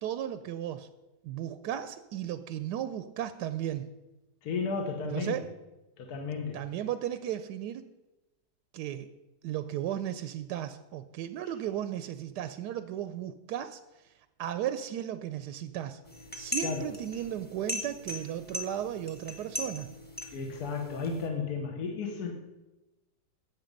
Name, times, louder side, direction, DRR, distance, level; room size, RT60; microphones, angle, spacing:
voice 1, 0.0-0.9 1.2-3.9 5.0-5.5 6.5-7.8 8.7-9.1 9.4-16.0 16.3-19.9, right 11 dB, 80° right, 12 dB, 1.2 m, -35 dB
voice 2, 4.4-5.4 6.0-6.6 16.6-16.9 20.3-22.4, left 5 dB, 65° left, 4 dB, 1.6 m, -33 dB
sound 1, 16.1-21.3, left 1 dB, 5° left, 1.2 m, -39 dB
11.5 x 8.0 x 5.2 m, 1.0 s
omnidirectional pair, 1.8 m